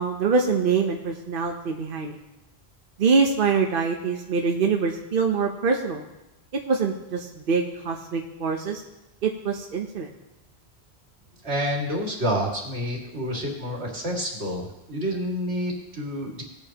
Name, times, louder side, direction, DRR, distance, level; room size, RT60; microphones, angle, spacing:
voice 1, 0.0-2.2 3.0-6.0 6.7-8.8 9.2-10.1, right 5 dB, 60° right, 2 dB, 1.0 m, -24 dB
voice 2, 11.4-16.4, equal, 85° right, -1 dB, 2.5 m, -28 dB
18.5 x 8.6 x 2.9 m, 0.97 s
omnidirectional pair, 1.1 m